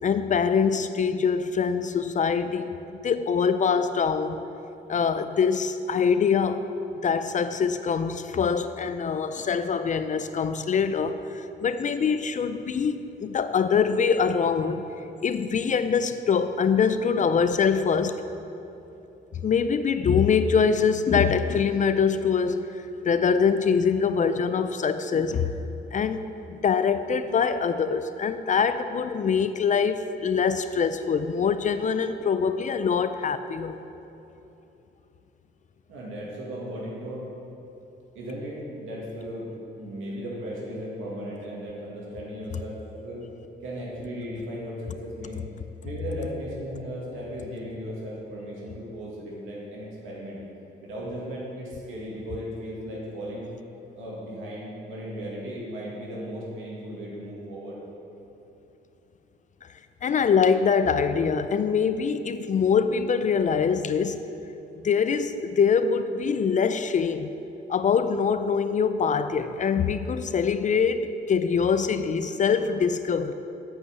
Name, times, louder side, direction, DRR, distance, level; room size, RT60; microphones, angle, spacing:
voice 1, 0.0-2.8 3.0-4.4 4.9-6.6 7.0-14.8 15.2-18.2 19.4-25.5 25.9-26.2 26.5-33.8 60.0-64.3 64.8-67.3 67.7-73.3, left 6 dB, 40° left, 11 dB, 0.4 m, -24 dB
voice 2, 35.9-37.3 38.1-39.5 39.8-43.2 43.6-45.4 45.8-50.4 50.8-53.5 53.9-57.8, equal, 85° right, -5 dB, 2.2 m, -36 dB
8.4 x 5.6 x 7.0 m, 3.0 s
cardioid pair, 90°, 20 cm